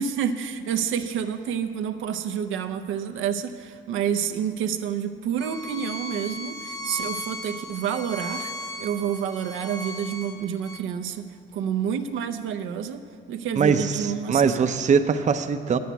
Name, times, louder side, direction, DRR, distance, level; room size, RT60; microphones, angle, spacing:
voice 1, 0.0-8.5 8.8-14.6, right 8 dB, 85° right, 7 dB, 0.6 m, -29 dB
Bowed string instrument, 5.4-10.8, equal, 15° left, 0.9 m, -36 dB
voice 2, 13.6-15.8, right 6 dB, 35° right, 8 dB, 0.6 m, -22 dB
9.1 x 7.8 x 8.1 m, 2.1 s
cardioid pair, 90°, 20 cm